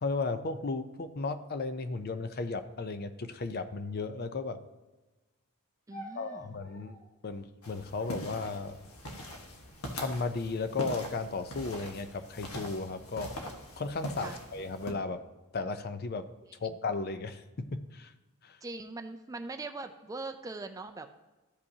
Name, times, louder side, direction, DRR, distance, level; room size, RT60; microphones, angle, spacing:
voice 1, 0.0-4.6 6.2-6.9 7.2-8.8 9.9-13.3 13.8-15.2 15.5-16.2 16.6-18.1 18.4-18.6, left 3 dB, 45° left, 10 dB, 0.5 m, -35 dB
sound 1, 5.9-7.2 8.0-9.2 9.9-10.4 10.8-11.4 12.1-13.3 14.1-14.6, equal, 65° left, 1.8 m, -54 dB
voice 2, 5.9-6.5 14.2-14.4 18.6-21.1, right 3 dB, 15° right, 6 dB, 0.4 m, -41 dB
sound 2, 7.6-14.9, left 1 dB, 85° left, 1.3 m, -42 dB
13.0 x 5.3 x 2.8 m, 1.2 s
head